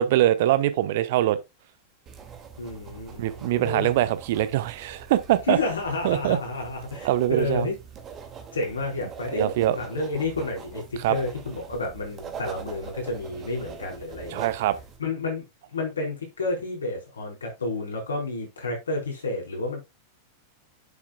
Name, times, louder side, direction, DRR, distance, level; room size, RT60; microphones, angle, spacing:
voice 1, 0.0-1.4 3.2-5.6 6.0-6.4 7.0-7.7 9.3-9.8 11.0-11.2 14.3-14.8, right 13 dB, 50° right, 0.9 m, -23 dB
sound 1, 2.1-15.0, right 6 dB, 30° right, 2.2 m, -43 dB
voice 2, 2.6-3.9 5.5-7.8 8.5-14.5 15.0-15.4 15.7-19.8, left 2 dB, 70° left, 4.4 m, -30 dB
9.6 x 7.5 x 2.3 m
figure-of-eight pair, 90°, 0 cm